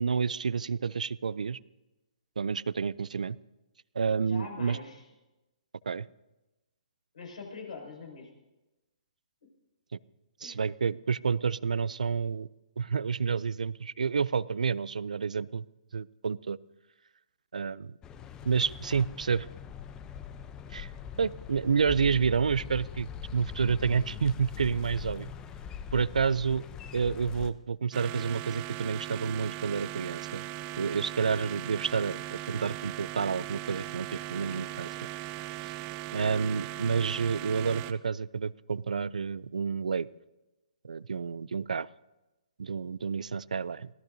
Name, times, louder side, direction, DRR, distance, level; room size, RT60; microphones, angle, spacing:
voice 1, 0.0-1.6 2.4-3.4 4.0-4.8 5.9-6.1 10.4-12.5 12.8-15.6 15.9-16.6 17.5-17.9 18.4-19.5 20.7-20.9 21.2-25.3 25.9-26.6 26.9-30.4 30.8-34.9 35.6-35.7 36.1-40.1 40.8-41.9 42.6-43.9, right 6 dB, 80° right, 21 dB, 0.4 m, -29 dB
voice 2, 4.3-5.0 7.1-8.3 10.4-10.7 20.9-21.1, left 4 dB, 75° left, 1 dB, 5.9 m, -43 dB
sound 1, 18.0-27.5, left 8 dB, 15° left, 0.6 m, -42 dB
sound 2, 27.9-37.9, right 17 dB, 25° right, 0.5 m, -39 dB
25.0 x 17.5 x 2.7 m, 1.0 s
hypercardioid pair, 140°, 4 cm